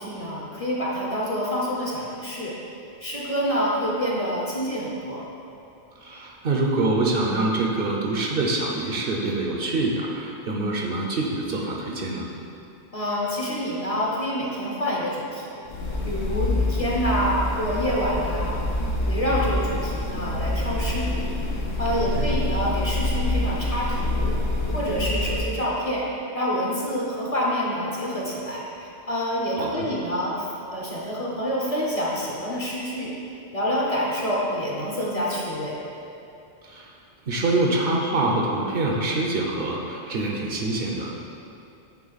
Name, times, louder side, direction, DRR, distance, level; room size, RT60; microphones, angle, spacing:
voice 1, 0.0-2.6 3.0-5.3 12.9-15.6 16.0-18.6 19.0-21.4 21.8-24.4 24.7-26.1 26.3-33.1 33.5-35.8, equal, 35° left, -5 dB, 0.8 m, -27 dB
voice 2, 6.0-12.3 21.9-22.3 29.6-29.9 36.6-36.9 37.3-41.2, right 2 dB, 60° right, -1 dB, 0.8 m, -25 dB
sound 1, 15.7-25.5, left 2 dB, 70° left, 1.1 m, -26 dB
8.4 x 3.7 x 4.0 m, 2.6 s
omnidirectional pair, 1.2 m